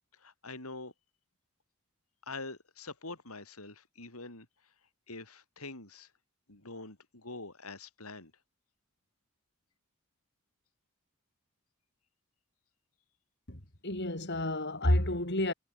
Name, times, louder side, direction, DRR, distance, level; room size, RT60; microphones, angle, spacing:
voice 1, 0.1-0.9 2.2-4.5 5.1-6.1 6.5-8.3, left 3 dB, 85° left, 7.2 m, -45 dB
voice 2, 13.5-15.5, left 1 dB, 50° left, 5.4 m, -30 dB
head